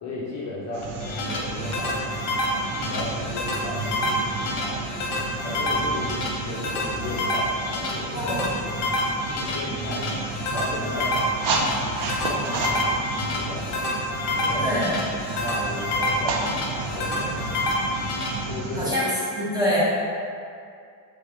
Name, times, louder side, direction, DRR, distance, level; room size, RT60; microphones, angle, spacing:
voice 1, 0.0-4.8 5.4-8.4 8.6-10.1 10.5-11.2 12.2-13.9 14.2-14.7 15.4-18.0 18.5-18.9, left 2 dB, 40° left, -6 dB, 0.5 m, -35 dB
sound 1, 0.7-18.9, right 3 dB, 65° right, 0.5 m, -32 dB
sound 2, 0.8-18.3, left 1 dB, 70° left, 0.8 m, -28 dB
voice 2, 14.6-15.0 18.8-19.0 19.3-19.8, equal, 10° right, -10 dB, 0.7 m, -25 dB
3.6 x 3.4 x 2.9 m, 2.4 s
cardioid pair, 170°, 45 cm